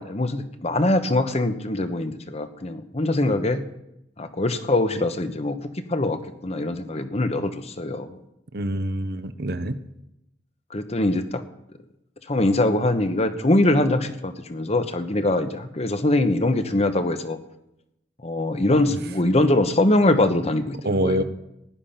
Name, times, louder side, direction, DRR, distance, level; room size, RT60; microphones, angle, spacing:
voice 1, 0.0-3.6 4.2-5.6 5.9-8.2 10.7-11.4 12.3-17.4 18.2-21.2, left 1 dB, 35° left, 9 dB, 1.1 m, -23 dB
voice 2, 8.5-9.8 20.8-21.2, right 1 dB, 60° right, 10 dB, 1.0 m, -25 dB
15.5 x 10.5 x 5.8 m, 0.85 s
head